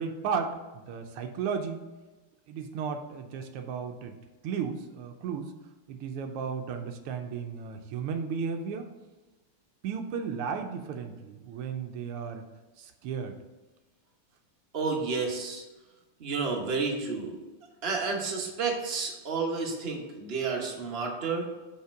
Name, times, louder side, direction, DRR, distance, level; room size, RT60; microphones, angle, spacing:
voice 1, 0.0-1.8 2.5-4.2 4.4-5.5 5.9-8.9 9.8-12.5 12.8-13.4, right 6 dB, 85° right, 5 dB, 1.6 m, -34 dB
voice 2, 14.7-15.6 16.2-17.4 17.8-21.5, right 4 dB, 40° right, 1 dB, 0.9 m, -31 dB
5.6 x 4.2 x 5.7 m, 1.2 s
omnidirectional pair, 2.4 m